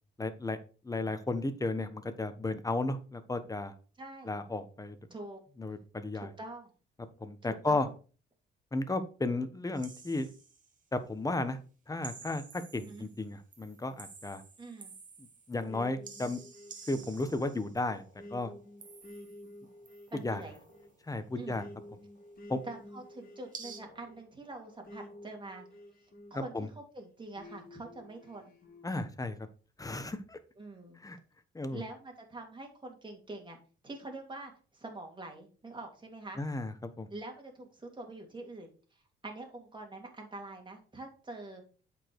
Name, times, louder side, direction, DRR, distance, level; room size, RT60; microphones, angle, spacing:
voice 1, 0.2-0.6 0.8-3.7 4.2-5.0 5.6-6.3 7.2-7.9 8.7-10.3 10.9-11.6 11.9-14.4 15.2-16.4 16.9-18.0 18.3-18.5 20.1-20.4 21.1-21.6 22.5-22.6 26.3-26.7 28.8-29.4 29.8-30.4 31.0-31.2 31.5-31.8 36.4-37.1, left 2 dB, 15° left, 10 dB, 1.3 m, -34 dB
voice 2, 4.0-4.3 5.1-5.4 6.1-6.7 7.5-7.9 12.8-13.1 14.6-14.9 20.1-20.6 21.3-21.6 22.6-25.7 26.3-28.5 30.6-31.0 31.7-33.6 33.8-36.4 37.1-41.6, right 2 dB, 25° right, 2 dB, 3.1 m, -45 dB
sound 1, 9.8-10.7 12.0-13.2 13.5-15.7 16.0-17.8 18.8-19.5 19.9-20.7 23.5-23.8, right 5 dB, 40° right, 2.0 m, -51 dB
sound 2, 15.7-26.7 27.4-28.9, left 1 dB, 45° left, 3.1 m, -52 dB
8.4 x 5.3 x 4.7 m, 0.37 s
cardioid pair, 90°, 20 cm